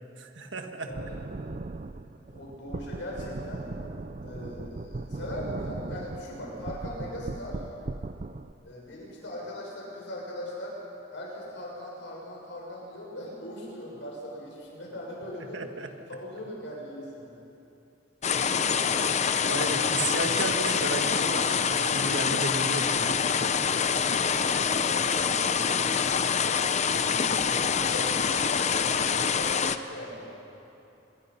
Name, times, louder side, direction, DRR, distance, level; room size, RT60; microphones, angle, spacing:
voice 1, 0.2-0.9 15.5-15.9 19.5-23.7, right 3 dB, 70° right, 5 dB, 1.8 m, -34 dB
voice 2, 0.8-1.2 2.1-3.6 4.2-7.6 8.6-10.8 11.1-15.6 16.1-17.3 18.3-19.1 24.3-26.0 26.9-30.4, left 1 dB, 70° left, -3 dB, 7.2 m, -40 dB
sound 1, 0.9-8.5, right 2 dB, 40° right, 0.5 m, -38 dB
sound 2, 18.2-29.8, left 6 dB, 35° left, 0.7 m, -26 dB
26.5 x 21.5 x 5.7 m, 2.9 s
head